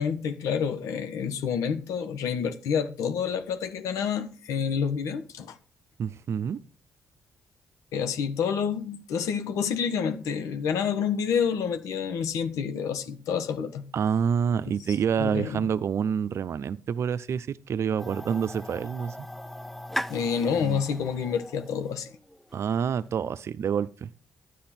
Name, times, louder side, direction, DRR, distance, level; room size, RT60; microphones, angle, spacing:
voice 1, 0.0-5.6 7.9-13.8 14.7-14.8 15.2-15.7 20.1-22.1, left 7 dB, 85° left, 1.3 m, -28 dB
voice 2, 6.0-6.6 13.9-19.3 22.5-24.1, right 7 dB, 60° right, 0.7 m, -27 dB
sound 1, 18.0-23.0, equal, 5° left, 0.6 m, -38 dB
10.0 x 9.8 x 4.3 m
cardioid pair, 75°, 5 cm